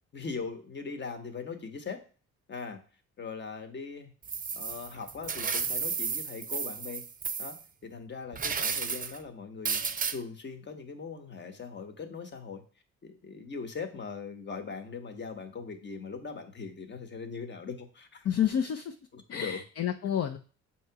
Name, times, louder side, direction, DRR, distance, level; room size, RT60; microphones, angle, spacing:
voice 1, 0.1-2.0 2.5-2.8 3.2-4.1 4.5-7.0 7.4-7.6 7.8-12.6 13.0-18.3 19.1-19.6, left 5 dB, 35° left, 7 dB, 1.1 m, -40 dB
sound 1, 4.2-7.6 8.3-9.2 9.7-10.2, right 6 dB, 30° right, 0.6 m, -33 dB
voice 2, 18.2-18.9 19.3-20.4, left 9 dB, 55° left, 6 dB, 0.6 m, -29 dB
7.0 x 3.0 x 4.6 m, 0.38 s
cardioid pair, 90°, 30 cm